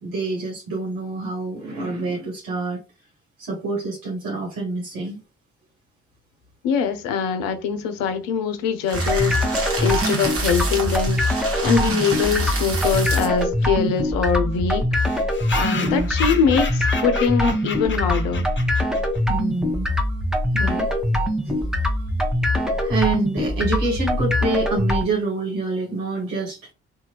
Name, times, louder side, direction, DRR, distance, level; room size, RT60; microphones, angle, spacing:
voice 1, 0.0-2.8 3.4-5.2 11.8-12.0 15.7-16.1 19.3-19.9 20.5-20.9 21.4-21.6 22.7-26.6, right 3 dB, 70° right, 1.2 m, -27 dB
voice 2, 6.6-11.2 11.6-14.9 15.5-18.5, left 6 dB, 70° left, 0.7 m, -23 dB
sound 1, 8.9-25.0, left 1 dB, ahead, 0.9 m, -23 dB
sound 2, 8.9-13.4, right 3 dB, 40° right, 1.2 m, -29 dB
sound 3, 13.3-13.4 13.6-13.7 14.0-14.1 14.3-14.4 15.0-19.2, left 5 dB, 35° left, 0.9 m, -32 dB
2.7 x 2.4 x 2.9 m
hypercardioid pair, 45°, 35 cm